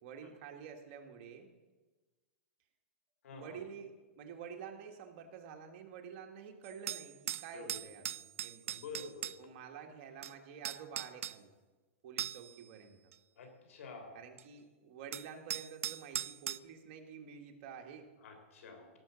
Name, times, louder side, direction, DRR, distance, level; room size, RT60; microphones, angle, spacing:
voice 1, 0.0-1.5 3.3-8.8 9.4-11.5 12.0-13.0 14.1-18.1, right 7 dB, 40° right, 3 dB, 1.6 m, -49 dB
voice 2, 3.2-3.6 7.5-8.0 8.7-9.4 13.4-14.2 18.2-18.9, left 3 dB, 85° left, 4 dB, 3.5 m, -49 dB
sound 1, 6.6-9.4 10.2-10.3 10.6-11.4 12.2-12.6 13.1-13.2 14.4-14.5 15.1-16.6, right 11 dB, 90° right, 0.4 m, -39 dB
17.5 x 5.9 x 6.8 m, 1.2 s
supercardioid pair, 160°, 7 cm